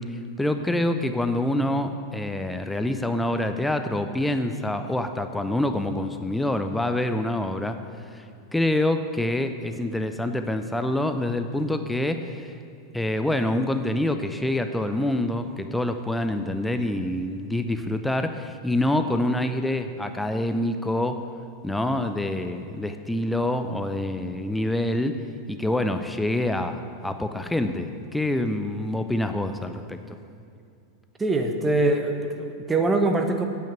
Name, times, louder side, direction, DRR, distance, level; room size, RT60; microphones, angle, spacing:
voice 1, 0.0-7.8 8.1-8.2 8.5-12.5 12.9-21.2 21.6-25.2 25.5-30.2, left 1 dB, 5° left, 8 dB, 0.6 m, -26 dB
voice 2, 31.2-33.4, right 2 dB, 15° right, 5 dB, 1.0 m, -23 dB
9.0 x 8.5 x 6.8 m, 2.5 s
figure-of-eight pair, 90°, 0 cm